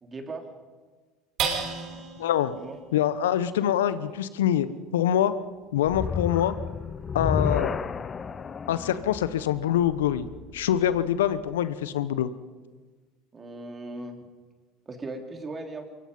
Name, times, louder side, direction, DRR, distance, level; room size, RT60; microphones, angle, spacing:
voice 1, 0.0-0.5 1.9-2.0 2.6-2.8 13.3-14.2 14.9-15.8, right 2 dB, 30° right, 4 dB, 3.7 m, -38 dB
sound 1, 1.4-8.1 8.6-8.7 9.1-9.6, right 6 dB, 55° right, 5.6 m, -38 dB
voice 2, 2.2-2.5 2.9-5.3 5.7-6.5 7.1-7.7 8.7-10.3 10.5-12.3, left 10 dB, 80° left, 14 dB, 1.1 m, -25 dB
sound 2, 5.9-11.1, left 6 dB, 30° left, 0.7 m, -32 dB
24.5 x 23.0 x 5.6 m, 1.4 s
hypercardioid pair, 70°, 0 cm